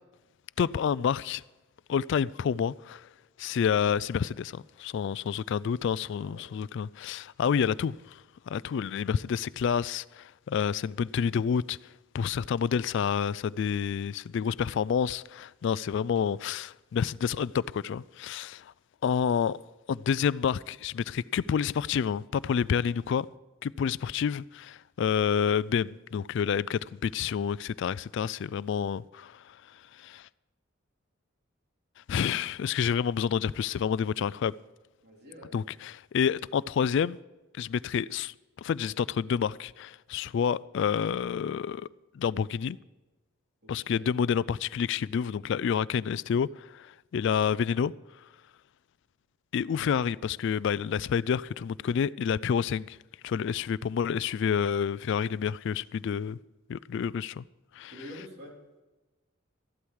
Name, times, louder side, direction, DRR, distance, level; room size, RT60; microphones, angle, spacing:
voice 1, 0.6-1.4 1.9-3.1 3.4-8.2 8.5-11.8 12.1-18.7 19.0-19.6 19.9-23.3 23.6-29.6 30.0-30.3 32.1-34.5 35.5-37.2 37.5-41.9 42.1-42.8 43.7-47.9 49.5-53.0 53.2-56.4 56.7-57.4 57.8-57.9, left 7 dB, 60° left, 0.3 m, -29 dB
voice 2, 6.2-6.5 35.0-35.6 43.6-44.1 57.9-58.5, left 1 dB, 50° right, 3.9 m, -47 dB
14.0 x 11.5 x 4.7 m
head